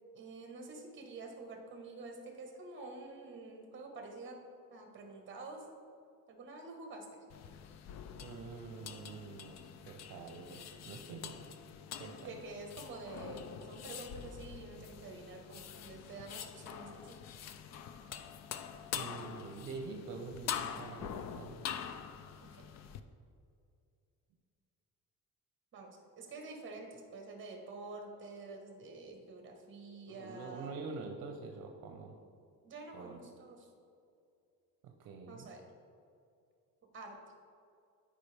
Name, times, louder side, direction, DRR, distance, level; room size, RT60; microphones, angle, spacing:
voice 1, 0.1-4.4 4.7-5.6 6.3-7.2 12.2-17.2 22.5-22.6 25.7-30.7 32.6-33.7 35.3-35.6 36.9-37.2, right 3 dB, 35° right, 2 dB, 1.3 m, -48 dB
sound 1, 7.3-23.0, left 8 dB, 50° left, 0.4 m, -45 dB
voice 2, 8.2-11.4 12.0-12.3 18.9-21.6 30.1-32.2 32.9-33.2 34.8-35.5, right 4 dB, 60° right, 3 dB, 0.8 m, -46 dB
13.0 x 5.1 x 3.4 m, 2.5 s
cardioid pair, 165°, 36 cm